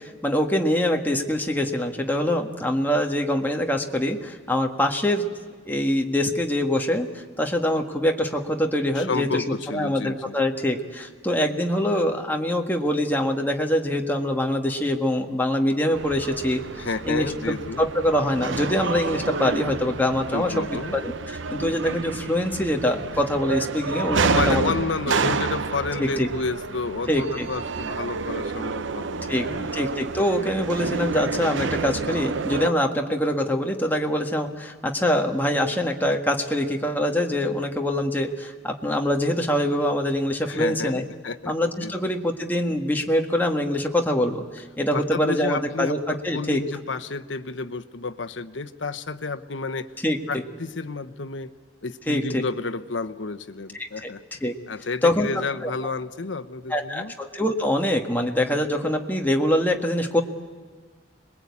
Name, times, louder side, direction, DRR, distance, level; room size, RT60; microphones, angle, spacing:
voice 1, 0.0-5.3 5.7-16.6 17.1-17.3 17.8-20.6 20.9-24.6 26.0-26.3 27.1-27.5 29.3-29.5 29.7-41.0 41.5-46.6 50.0-50.4 52.1-52.4 54.0-54.1 54.4-54.5 55.0-55.3 55.6-55.7 56.7-60.2, left 1 dB, 10° left, 2 dB, 1.7 m, -24 dB
voice 2, 8.9-10.3 16.7-17.9 20.3-21.0 24.3-29.8 40.5-41.5 41.8-41.9 44.9-49.9 50.3-51.5 51.8-57.1, left 4 dB, 80° left, 11 dB, 1.0 m, -31 dB
sound 1, 15.9-32.7, right 4 dB, 80° right, 0.7 m, -29 dB
26.5 x 21.0 x 8.5 m, 1.5 s
head